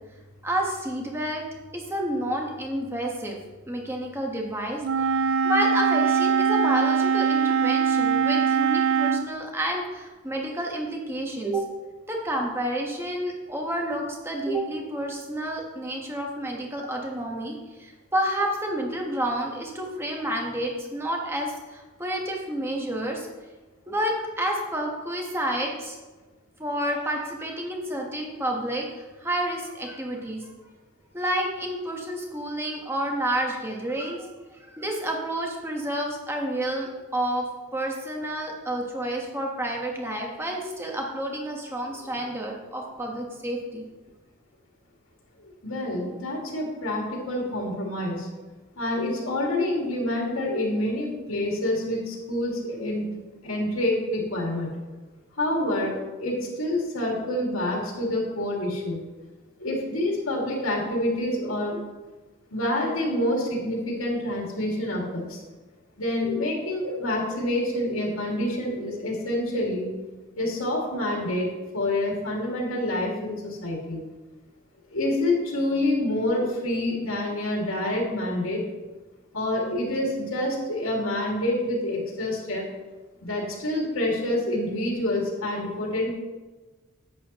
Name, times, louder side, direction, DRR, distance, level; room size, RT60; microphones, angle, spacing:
voice 1, 0.4-1.4 1.7-3.4 3.7-4.8 5.4-11.7 12.1-23.3 23.9-26.0 26.6-28.9 29.2-30.5 31.1-37.4 37.7-43.8, right 1 dB, 10° right, 0 dB, 1.2 m, -29 dB
Wind instrument woodwind instrument, 4.8-9.3, right 6 dB, 70° right, 0.3 m, -22 dB
voice 2, 45.4-48.3 48.8-53.1 53.4-54.7 55.4-59.0 59.6-61.8 62.5-65.4 66.0-70.0 70.4-74.0 74.9-78.6 79.3-82.7 83.2-86.1, left 1 dB, 85° left, -1 dB, 2.2 m, -27 dB
10.5 x 8.6 x 3.0 m, 1.2 s
head